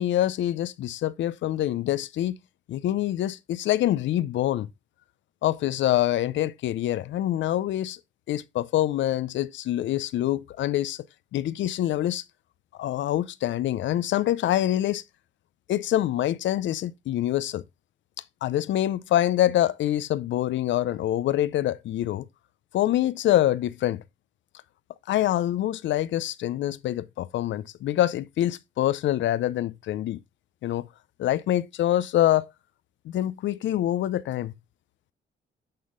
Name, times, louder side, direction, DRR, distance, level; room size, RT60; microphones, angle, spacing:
voice 1, 0.0-2.4 2.7-4.7 5.4-8.0 8.3-11.0 11.3-12.2 12.8-15.0 15.7-17.6 18.4-22.3 22.7-24.0 25.1-30.2 30.6-30.9 31.2-32.4 33.1-34.5, left 13 dB, 70° left, 0.5 m, -25 dB
8.9 x 3.7 x 3.7 m
cardioid pair, 90°, 20 cm